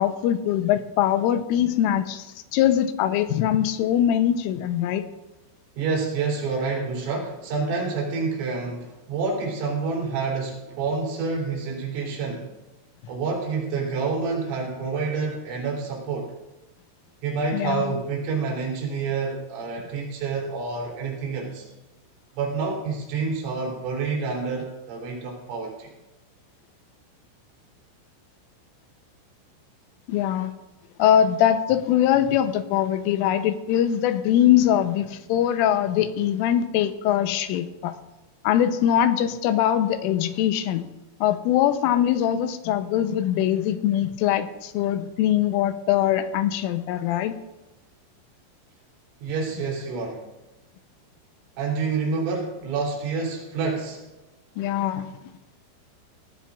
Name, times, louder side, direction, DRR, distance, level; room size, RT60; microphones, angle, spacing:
voice 1, 0.0-2.3 2.5-5.0 17.5-17.8 30.1-30.5 31.0-38.0 38.4-40.9 41.2-47.3 54.6-55.1, left 10 dB, 90° left, 9 dB, 3.3 m, -22 dB
voice 2, 5.7-12.5 13.1-16.3 17.2-21.7 22.4-25.9 49.2-50.2 51.6-54.0, right 4 dB, 75° right, -2 dB, 5.9 m, -28 dB
19.5 x 16.0 x 2.5 m, 1.1 s
omnidirectional pair, 5.8 m